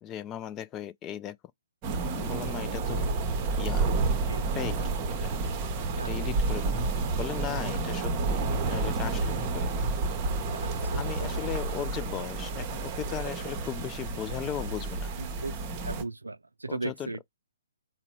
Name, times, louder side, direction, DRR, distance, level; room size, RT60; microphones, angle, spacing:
voice 1, 0.0-1.4 2.2-3.0 3.6-3.9 4.5-4.8 5.2-5.3 6.0-6.9 7.2-8.4 8.7-9.7 10.8-15.1 16.7-17.2, left 10 dB, 20° left, 0.3 m, -37 dB
sound 1, 1.8-16.0, right 3 dB, 25° right, 0.8 m, -30 dB
voice 2, 10.5-11.3 15.2-15.5 15.8-17.2, right 3 dB, 80° right, 0.4 m, -37 dB
3.9 x 2.0 x 4.4 m
figure-of-eight pair, 130°, 0 cm